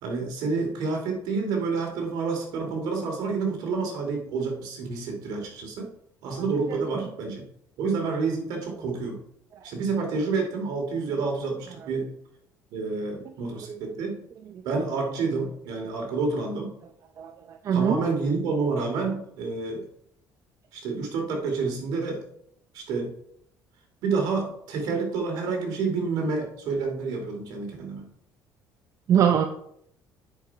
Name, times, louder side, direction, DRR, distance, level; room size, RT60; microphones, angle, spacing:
voice 1, 0.0-5.9 6.2-7.4 7.8-9.2 9.6-12.1 12.7-14.2 14.6-16.7 17.7-19.8 20.7-22.2 22.7-23.1 24.0-28.0, right 4 dB, 80° right, 2 dB, 2.5 m, -28 dB
voice 2, 17.2-18.0 29.1-29.4, right 8 dB, 55° right, 6 dB, 0.7 m, -22 dB
9.9 x 5.0 x 4.7 m, 0.71 s
cardioid pair, 105°, 7 cm